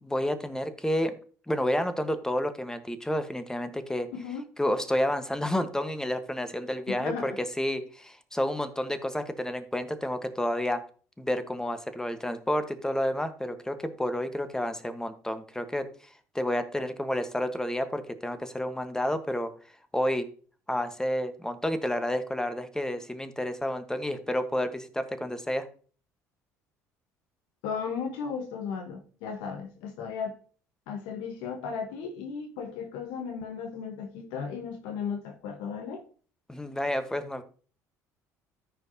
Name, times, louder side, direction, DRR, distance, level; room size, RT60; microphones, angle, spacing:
voice 1, 0.0-1.1 1.5-4.1 4.6-10.8 11.2-15.9 16.3-19.5 19.9-20.3 20.7-25.7 36.5-37.4, left 1 dB, 5° left, 10 dB, 1.3 m, -30 dB
voice 2, 4.1-4.5 6.9-7.4 27.6-30.4 30.9-36.1, left 6 dB, 70° left, 3 dB, 1.2 m, -35 dB
14.0 x 5.2 x 2.8 m, 0.41 s
hypercardioid pair, 65°, 8 cm